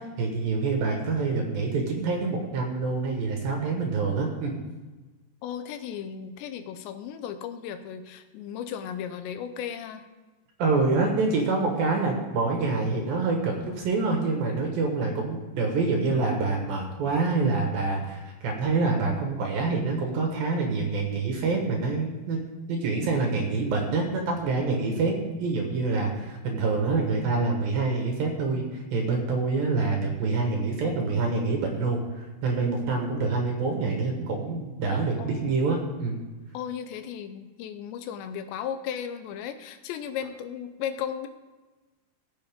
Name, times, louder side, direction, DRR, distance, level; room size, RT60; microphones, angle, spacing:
voice 1, 0.2-4.5 10.6-22.4 22.7-25.1 25.4-36.2, right 3 dB, 65° right, 1 dB, 2.9 m, -26 dB
voice 2, 5.4-10.0 35.2-35.5 36.5-41.3, left 8 dB, 85° left, 8 dB, 2.9 m, -35 dB
17.5 x 7.6 x 3.7 m, 1.2 s
omnidirectional pair, 5.1 m